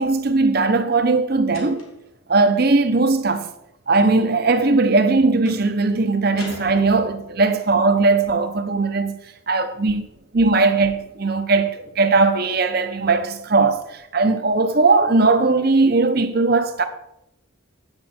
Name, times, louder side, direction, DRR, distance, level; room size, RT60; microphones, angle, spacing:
voice 1, 0.0-1.8 2.3-3.5 3.9-9.2 9.5-10.1 10.3-16.8, right 3 dB, 50° right, 0.8 m, -18 dB
sound 1, 1.5-2.1 5.4-5.7 6.4-7.4, left 2 dB, 90° left, 2.4 m, -40 dB
9.7 x 7.9 x 4.3 m
head